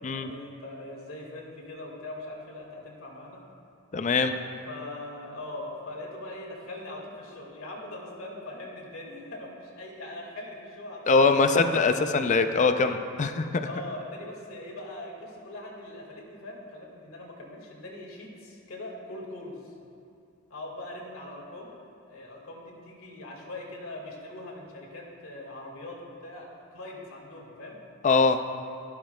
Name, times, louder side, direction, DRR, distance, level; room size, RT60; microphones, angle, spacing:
voice 1, 0.1-3.4 4.7-11.8 13.6-19.7 20.5-21.7 22.1-27.8, left 1 dB, 80° left, -2 dB, 1.9 m, -41 dB
voice 2, 3.9-4.3 11.1-13.5 28.0-28.4, left 4 dB, 35° left, 8 dB, 0.4 m, -22 dB
12.0 x 11.5 x 2.2 m, 2.6 s
head